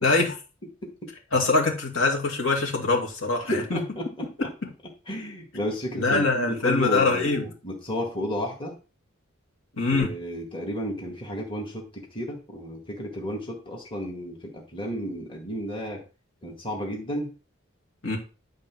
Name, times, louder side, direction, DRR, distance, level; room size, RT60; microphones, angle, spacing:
voice 1, 0.0-0.3 1.3-3.8 4.4-4.5 5.9-7.4 9.8-10.1 18.0-18.2, left 3 dB, 70° left, -1 dB, 2.3 m, -23 dB
voice 2, 3.4-4.3 5.1-8.7 9.8-16.0 16.4-17.3, equal, 25° left, 0 dB, 1.8 m, -32 dB
10.5 x 3.9 x 6.1 m, 0.33 s
head